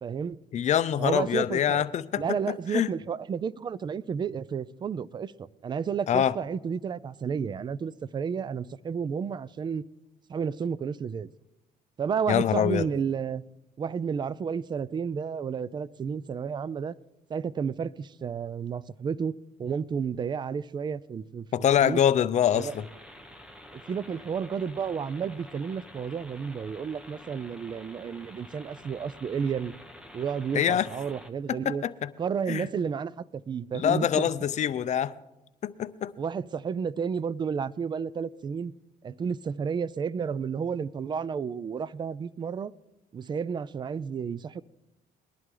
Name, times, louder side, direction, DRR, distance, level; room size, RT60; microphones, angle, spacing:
voice 1, 0.0-0.4 1.0-1.9 2.2-5.3 5.6-9.8 10.3-11.3 12.0-13.4 13.8-16.9 17.3-21.5 21.8-22.0 22.5-22.7 23.7-29.7 30.1-31.8 32.2-34.3 36.2-38.7 39.0-42.7 43.1-44.6, right 6 dB, 25° right, 0.4 m, -31 dB
voice 2, 0.5-2.9 6.1-6.3 12.3-12.9 21.5-22.8 30.5-30.9 31.7-32.1 32.5-32.7 33.7-35.1 35.6-36.1, left 9 dB, 45° left, 0.6 m, -25 dB
sound 1, 22.5-31.3, equal, 5° right, 1.1 m, -49 dB
20.0 x 11.0 x 3.8 m
cardioid pair, 110°, 17 cm